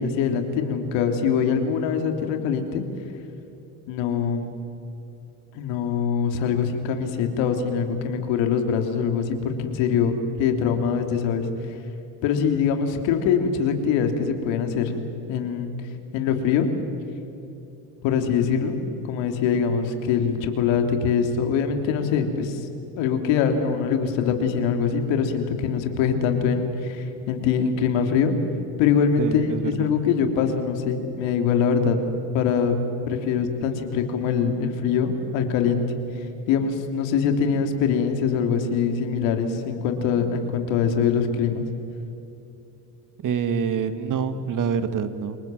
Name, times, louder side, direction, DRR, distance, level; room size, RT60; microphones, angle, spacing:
voice 1, 0.0-2.8 3.9-4.5 5.5-10.1 10.4-11.5 12.2-15.0 15.3-15.7 16.1-16.7 18.0-18.7 19.0-22.7 23.0-28.3 28.8-32.0 32.3-32.8 33.1-35.8 36.5-41.6, left 6 dB, 70° left, 5 dB, 3.2 m, -23 dB
voice 2, 29.2-29.9 43.2-45.4, right 6 dB, 40° right, 10 dB, 1.8 m, -26 dB
28.0 x 22.5 x 7.7 m, 2.9 s
supercardioid pair, 100°, 47 cm